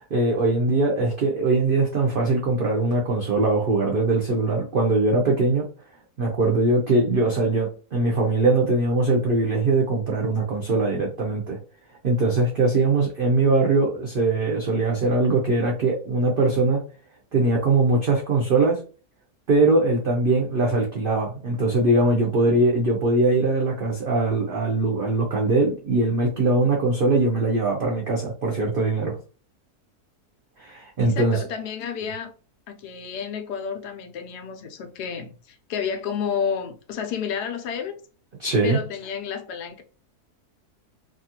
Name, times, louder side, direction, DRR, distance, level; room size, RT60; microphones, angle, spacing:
voice 1, 0.1-5.6 6.2-11.6 12.0-16.8 17.3-18.8 19.5-29.2 30.6-31.4 38.4-38.8, right 2 dB, 85° right, 0.4 m, -21 dB
voice 2, 31.0-32.3 32.7-38.0 38.6-39.8, left 7 dB, 80° left, 1.2 m, -31 dB
2.9 x 2.4 x 2.8 m
omnidirectional pair, 1.7 m